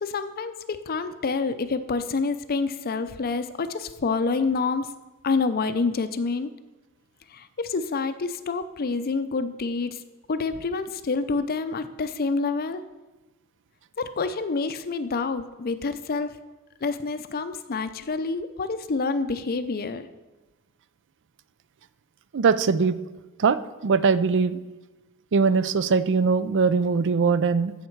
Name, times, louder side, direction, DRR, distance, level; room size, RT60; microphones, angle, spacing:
voice 1, 0.0-4.9 5.2-6.5 7.3-10.0 10.3-12.8 14.0-16.4 16.8-20.1, left 4 dB, 45° left, 10 dB, 0.5 m, -27 dB
voice 2, 22.3-23.0 23.4-24.6 25.3-27.7, right 5 dB, 55° right, 15 dB, 0.5 m, -21 dB
15.0 x 6.6 x 4.6 m, 1.1 s
head